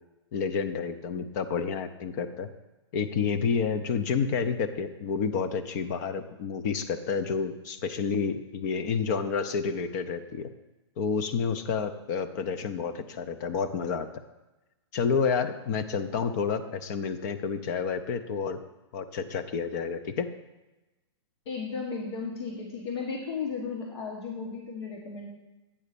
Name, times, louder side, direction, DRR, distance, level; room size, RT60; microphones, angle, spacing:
voice 1, 0.3-2.5 2.9-10.5 11.0-14.1 14.9-18.6 18.9-20.3, left 6 dB, 40° left, 10 dB, 0.6 m, -29 dB
voice 2, 21.4-25.3, left 5 dB, 70° left, -1 dB, 1.4 m, -35 dB
8.5 x 4.0 x 6.8 m, 1.0 s
hypercardioid pair, 150°, 15 cm